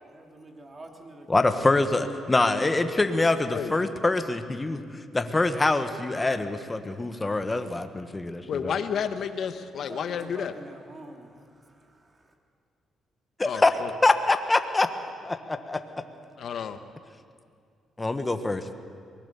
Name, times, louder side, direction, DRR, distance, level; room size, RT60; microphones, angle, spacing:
voice 1, 0.1-1.7 9.8-12.3, right 2 dB, 30° right, 2 dB, 3.3 m, -46 dB
voice 2, 1.3-8.8 13.4-13.7 14.0-14.9 15.2-15.8 18.0-18.7, left 2 dB, 20° left, 8 dB, 1.4 m, -25 dB
voice 3, 8.5-10.5 13.4-13.9 16.4-16.8, left 7 dB, 65° left, 9 dB, 1.3 m, -31 dB
23.0 x 20.0 x 7.1 m, 2.2 s
cardioid pair, 90°, 0 cm